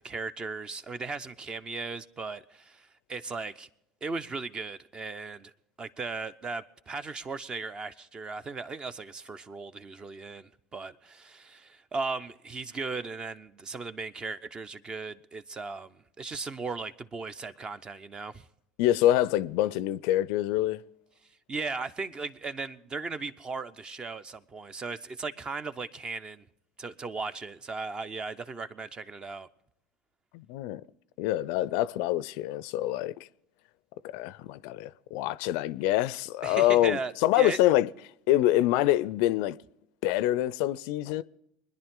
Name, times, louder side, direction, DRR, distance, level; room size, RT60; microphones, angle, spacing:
voice 1, 0.0-3.7 4.0-5.5 5.8-18.5 21.5-26.5 26.8-29.5 36.4-37.6, right 4 dB, 30° right, 0.8 m, -37 dB
voice 2, 18.8-20.8 30.3-30.8 31.2-33.1 34.0-37.9 38.3-39.6 40.0-41.2, left 14 dB, 65° left, 0.4 m, -26 dB
24.5 x 10.5 x 3.7 m
hypercardioid pair, 70°, 3 cm